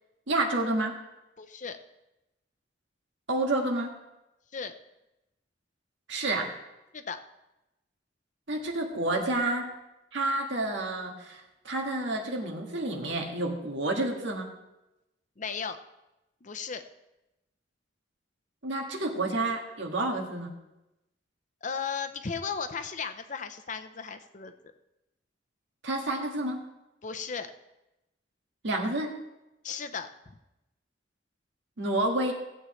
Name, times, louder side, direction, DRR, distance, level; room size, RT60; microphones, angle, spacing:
voice 1, 0.3-1.0 3.3-3.9 6.1-6.5 8.5-9.7 10.1-14.5 18.6-20.6 25.8-26.6 28.6-29.2 31.8-32.3, right 2 dB, 90° right, 1 dB, 1.8 m, -29 dB
voice 2, 1.4-1.8 4.5-4.7 6.9-7.2 15.4-15.8 16.4-16.8 21.6-24.5 27.0-27.5 29.6-30.4, left 6 dB, 45° left, 9 dB, 0.7 m, -35 dB
17.5 x 8.1 x 3.2 m, 0.95 s
head